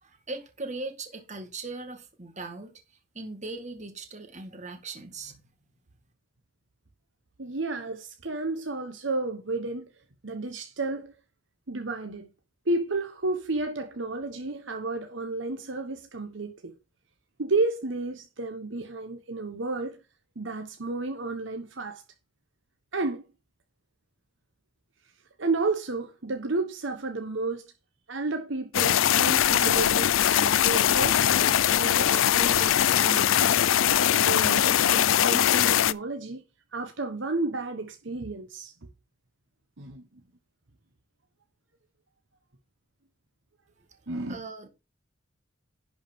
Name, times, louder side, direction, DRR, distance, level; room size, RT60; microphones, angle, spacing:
voice 1, 0.0-5.4 44.3-44.7, right 3 dB, 35° right, 2.0 m, -39 dB
voice 2, 7.4-9.9 10.2-11.1 11.7-12.3 12.7-16.7 17.4-20.0 20.4-22.0 22.9-23.2 25.4-27.7 28.1-33.2 34.1-36.4 36.7-38.7 39.8-40.1 44.1-44.4, right 3 dB, 65° right, 1.2 m, -32 dB
sound 1, 28.7-35.9, left 10 dB, 75° left, 0.4 m, -21 dB
11.0 x 4.9 x 5.2 m
head